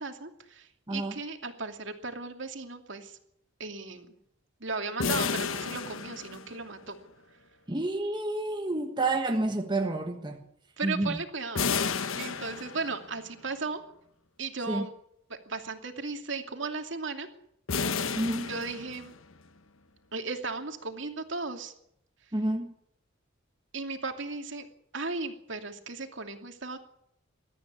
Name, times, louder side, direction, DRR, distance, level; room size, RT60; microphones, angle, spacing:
voice 1, 0.0-3.2 3.6-4.2 4.6-7.0 10.8-11.6 12.2-13.8 14.4-14.9 15.3-17.3 18.4-19.1 20.1-21.7 23.7-24.7 24.9-26.8, right 3 dB, 60° right, 2.7 m, -36 dB
sound 1, 5.0-6.9 11.6-13.2 17.7-19.3, left 5 dB, 75° left, 1.2 m, -32 dB
voice 2, 7.7-10.4 10.8-11.2 14.7-14.8 18.1-18.5 22.3-22.7, right 2 dB, 20° right, 1.4 m, -29 dB
21.5 x 13.5 x 9.9 m
head